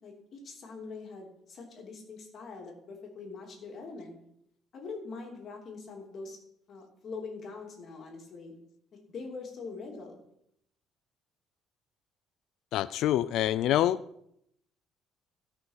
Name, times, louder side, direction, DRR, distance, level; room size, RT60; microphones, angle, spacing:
voice 1, 0.0-4.2 4.7-6.4 6.7-8.5 9.1-10.2, left 4 dB, 40° left, 1 dB, 3.0 m, -43 dB
voice 2, 12.7-14.0, left 12 dB, 65° left, 16 dB, 0.4 m, -26 dB
17.0 x 6.2 x 5.7 m, 0.74 s
cardioid pair, 150°, 0 cm